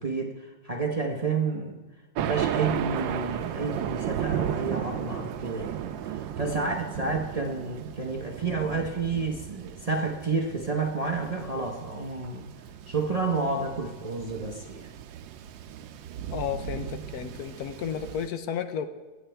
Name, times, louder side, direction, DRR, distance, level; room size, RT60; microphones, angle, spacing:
voice 1, 0.0-1.8 2.2-5.8 6.1-12.5 12.9-14.9, right 4 dB, 55° right, 0 dB, 0.4 m, -30 dB
Thunder, 2.2-18.3, right 9 dB, 80° right, 1.3 m, -35 dB
voice 2, 16.3-18.9, left 8 dB, 65° left, 9 dB, 1.0 m, -33 dB
22.5 x 8.1 x 3.4 m, 1.3 s
omnidirectional pair, 2.1 m